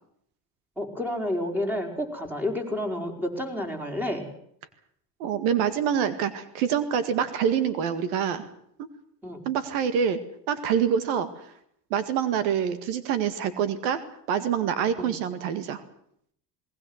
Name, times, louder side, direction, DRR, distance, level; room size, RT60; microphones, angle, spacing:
voice 1, 0.8-4.2 9.2-9.4 15.0-15.1, left 1 dB, 5° right, 3 dB, 4.9 m, -30 dB
voice 2, 5.2-8.5 8.8-8.9 9.5-10.2 10.5-11.3 11.9-15.8, right 8 dB, 90° right, 13 dB, 2.0 m, -26 dB
19.5 x 19.5 x 8.0 m, 0.68 s
supercardioid pair, 105°, 41 cm